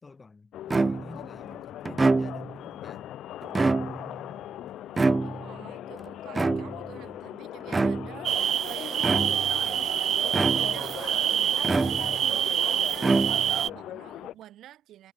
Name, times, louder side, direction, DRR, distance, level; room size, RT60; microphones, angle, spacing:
voice 1, 0.0-3.1, left 4 dB, 25° left, 1.6 m, -50 dB
sound 1, 0.5-14.3, left 13 dB, 85° left, 0.6 m, -40 dB
sound 2, 0.7-1.3 1.8-2.6 3.4-4.2 5.0-5.6 6.3-7.0 7.7-8.2 9.0-9.6 10.3-10.9 11.6-12.3 13.0-13.7, right 3 dB, 20° right, 0.5 m, -26 dB
voice 2, 5.2-15.1, right 13 dB, 85° right, 4.5 m, -49 dB
sound 3, 8.2-13.7, right 10 dB, 60° right, 0.6 m, -26 dB
cardioid pair, 150°, 0 cm